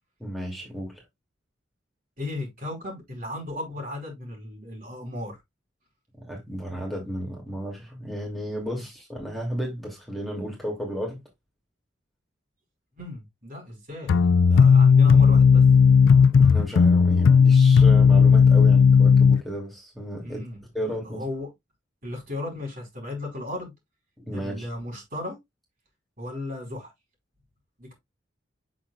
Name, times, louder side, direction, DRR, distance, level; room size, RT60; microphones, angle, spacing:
voice 1, 0.2-1.0 6.2-11.2 16.3-20.4 20.7-21.3 24.2-24.7, equal, ahead, 2.7 m, -33 dB
voice 2, 2.2-5.4 8.8-8.9 13.0-14.2 14.5-15.7 20.2-21.5 22.0-23.7 24.3-25.4 26.2-26.9 27.8-27.9, left 2 dB, 45° right, 4.7 m, -35 dB
sound 1, 14.1-19.4, left 6 dB, 85° left, 0.4 m, -15 dB
8.1 x 6.3 x 2.4 m
head